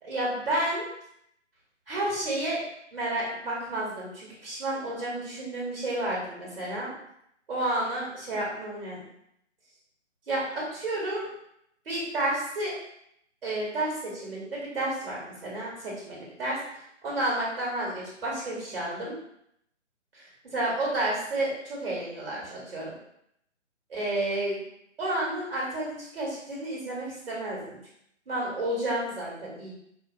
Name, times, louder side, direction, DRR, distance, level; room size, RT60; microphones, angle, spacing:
voice 1, 0.0-0.8 1.9-2.6 2.9-6.9 7.5-9.0 10.3-11.3 11.8-12.8 13.4-19.2 20.1-22.9 23.9-24.6 25.0-27.8 28.3-29.7, right 1 dB, 50° right, -4 dB, 1.5 m, -31 dB
4.5 x 2.2 x 2.7 m, 0.75 s
figure-of-eight pair, 145°, 37 cm